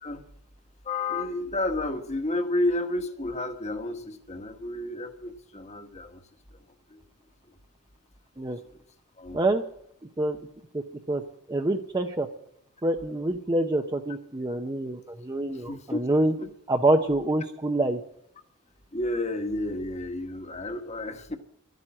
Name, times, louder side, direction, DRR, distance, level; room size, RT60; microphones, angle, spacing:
voice 1, 0.8-6.2 6.5-6.6 6.9-7.0 7.5-7.6 8.7-8.8 9.2-9.4 15.5-16.0 16.4-16.5 18.9-21.4, left 2 dB, 30° left, 8 dB, 1.3 m, -31 dB
voice 2, 11.5-12.3 12.8-16.3 16.7-18.0, right 1 dB, 20° right, 5 dB, 0.6 m, -26 dB
12.5 x 9.1 x 8.6 m, 0.72 s
head